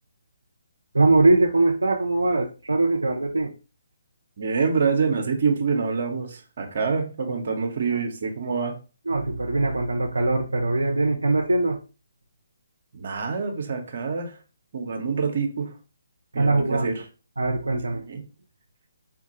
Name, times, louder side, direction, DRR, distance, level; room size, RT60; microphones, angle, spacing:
voice 1, 0.9-3.5 9.1-11.8 16.3-16.9 17.4-18.0, right 2 dB, 75° right, 2 dB, 0.4 m, -21 dB
voice 2, 4.4-8.8 12.9-14.4 14.7-15.7 16.3-16.9 17.9-18.2, right 5 dB, 50° right, 4 dB, 0.8 m, -26 dB
3.8 x 2.2 x 2.8 m, 0.33 s
figure-of-eight pair, 140°, 0 cm